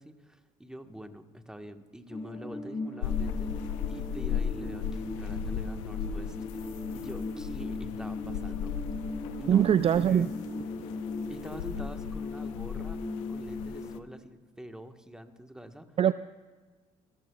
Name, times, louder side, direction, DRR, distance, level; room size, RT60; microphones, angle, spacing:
voice 1, 0.0-8.9 9.4-9.8 10.0-10.3 11.3-13.0 13.3-15.9, equal, 5° right, 7 dB, 1.4 m, -45 dB
sound 1, 2.1-14.0, left 3 dB, 30° left, 2.0 m, -38 dB
sound 2, 3.0-14.0, left 8 dB, 90° left, 0.6 m, -37 dB
sound 3, 6.4-7.9 8.3-8.4 9.7-11.8, left 8 dB, 70° left, 5.2 m, -61 dB
voice 2, 9.5-10.3 16.0-16.1, right 9 dB, 40° right, 14 dB, 0.4 m, -22 dB
27.5 x 13.5 x 2.4 m, 1.3 s
hypercardioid pair, 60°, 16 cm